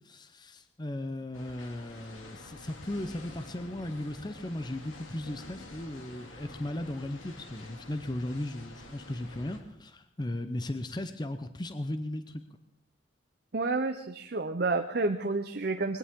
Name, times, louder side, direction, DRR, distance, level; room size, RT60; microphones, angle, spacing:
voice 1, 0.0-12.4, left 1 dB, 20° left, 9 dB, 0.7 m, -36 dB
sound 1, 1.3-9.6, left 2 dB, 90° left, 2.4 m, -49 dB
voice 2, 13.5-16.0, right 3 dB, 50° right, 6 dB, 0.7 m, -30 dB
21.5 x 17.0 x 3.7 m, 0.80 s
head